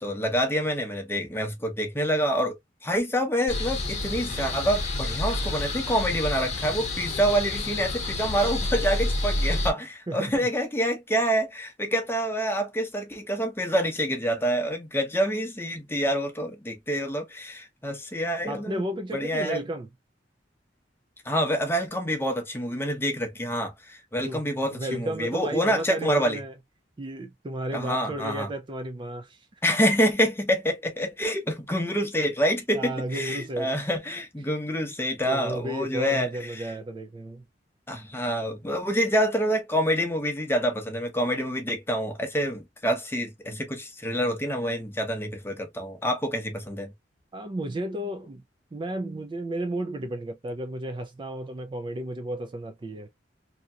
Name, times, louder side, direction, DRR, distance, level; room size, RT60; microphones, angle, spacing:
voice 1, 0.0-18.8 19.1-19.6 21.2-26.4 27.7-28.5 29.6-36.3 36.6-36.7 37.9-46.9, equal, 15° left, 0.7 m, -27 dB
sound 1, 3.5-9.7, left 2 dB, 40° left, 1.0 m, -29 dB
voice 2, 10.1-10.5 18.5-19.9 24.3-24.4 24.7-26.5 27.0-29.8 32.7-33.8 34.4-34.5 35.3-37.4 47.3-48.4 48.7-53.1, right 1 dB, 25° right, 0.4 m, -33 dB
2.9 x 2.7 x 2.3 m
head